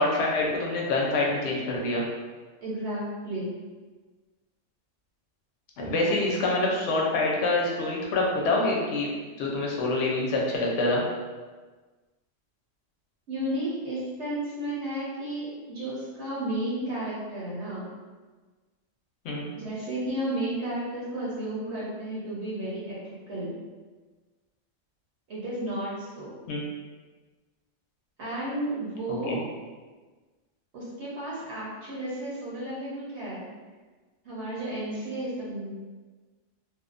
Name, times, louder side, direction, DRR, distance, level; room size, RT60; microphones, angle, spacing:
voice 1, 0.0-2.0 5.8-9.1 9.4-11.0 19.2-19.5 26.5-26.6 29.1-29.4, left 2 dB, 65° left, -2 dB, 0.8 m, -26 dB
voice 2, 2.6-3.5 5.8-6.2 6.6-6.7 13.3-17.9 19.5-23.0 23.3-23.6 25.3-26.3 28.2-29.4 30.7-33.5 34.2-35.7, right 1 dB, 65° right, -7 dB, 0.9 m, -33 dB
2.5 x 2.1 x 2.4 m, 1.3 s
omnidirectional pair, 1.3 m